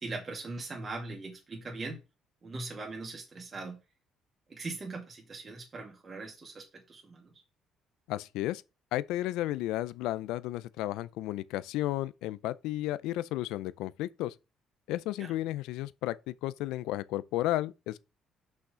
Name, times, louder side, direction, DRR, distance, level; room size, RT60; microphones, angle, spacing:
voice 1, 0.0-2.0 2.4-3.8 4.5-7.3 15.2-15.3, right 3 dB, 35° right, 2.2 m, -40 dB
voice 2, 8.1-8.6 8.9-14.3 14.9-18.0, left 15 dB, 90° left, 0.5 m, -33 dB
6.2 x 5.7 x 5.0 m
cardioid pair, 95°, 0 cm